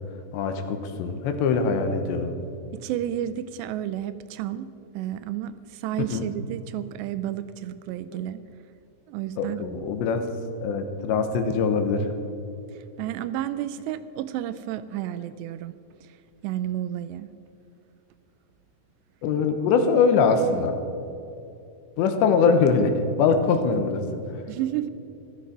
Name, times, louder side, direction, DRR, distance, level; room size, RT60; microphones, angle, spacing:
voice 1, 0.3-2.3 6.0-6.3 8.1-8.2 9.4-10.3 10.6-12.1 19.2-20.8 22.0-24.2, left 5 dB, 80° left, 7 dB, 3.3 m, -23 dB
voice 2, 2.7-8.4 9.1-9.6 13.0-15.7 16.4-17.3 24.5-24.9, right 12 dB, 85° right, 14 dB, 2.6 m, -31 dB
15.0 x 13.0 x 5.2 m, 2.7 s
omnidirectional pair, 5.1 m